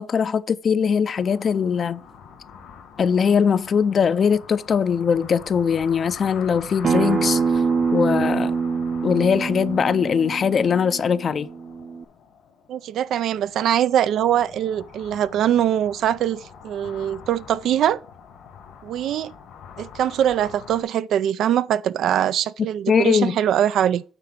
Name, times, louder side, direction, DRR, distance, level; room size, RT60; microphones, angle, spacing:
voice 1, 0.0-2.0 3.0-7.4 7.9-8.5 9.0-11.5 22.9-23.4, left 6 dB, 50° left, 0.5 m, -21 dB
sound 1, 1.1-20.8, left 7 dB, 85° left, 1.9 m, -44 dB
Acoustic guitar, 6.8-12.0, right 5 dB, 55° right, 0.7 m, -25 dB
voice 2, 12.7-18.0 18.8-19.3 19.8-24.0, right 10 dB, 75° right, 0.4 m, -22 dB
8.9 x 3.7 x 5.8 m
cardioid pair, 90°, 0 cm